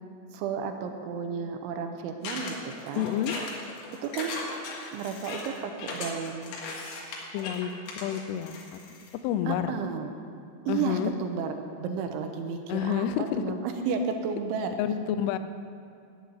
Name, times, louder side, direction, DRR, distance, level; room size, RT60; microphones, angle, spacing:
voice 1, 0.3-3.1 4.0-4.3 4.9-6.6 9.5-10.1 10.7-13.1 13.4-14.7, right 6 dB, 80° right, 5 dB, 3.3 m, -32 dB
sound 1, 2.2-9.1, left 3 dB, 75° left, 4.0 m, -38 dB
voice 2, 3.0-3.3 7.3-8.8 9.2-9.7 10.7-11.1 12.7-13.4 14.8-15.4, left 10 dB, 90° left, 11 dB, 3.2 m, -29 dB
12.0 x 8.3 x 9.5 m, 2.5 s
omnidirectional pair, 5.5 m